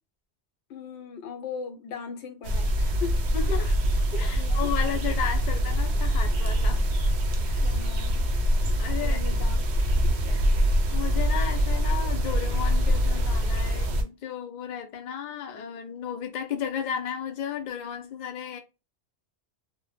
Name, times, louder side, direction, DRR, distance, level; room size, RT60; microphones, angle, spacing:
voice 1, 0.7-3.3 3.6-3.7 4.4-4.7 7.6-8.3 9.0-9.7 10.0-10.4, left 6 dB, 75° left, 0.8 m, -39 dB
sound 1, 2.4-14.0, equal, 75° right, 0.8 m, -24 dB
voice 2, 3.3-3.7 4.1-6.9 7.5-7.7 8.7-9.2 10.9-18.6, left 8 dB, 60° left, 0.5 m, -34 dB
2.0 x 2.0 x 3.1 m
omnidirectional pair, 1.1 m